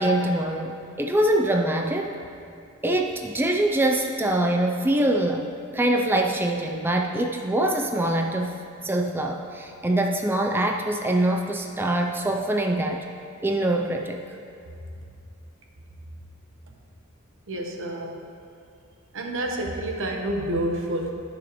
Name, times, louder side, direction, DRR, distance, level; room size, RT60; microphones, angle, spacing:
voice 1, 0.0-2.1 2.8-8.6 8.8-13.0 13.4-14.2, right 1 dB, 10° right, 2 dB, 0.4 m, -24 dB
voice 2, 17.5-18.3 19.1-21.1, right 1 dB, 65° right, 2 dB, 1.0 m, -28 dB
14.0 x 6.2 x 3.0 m, 2.5 s
head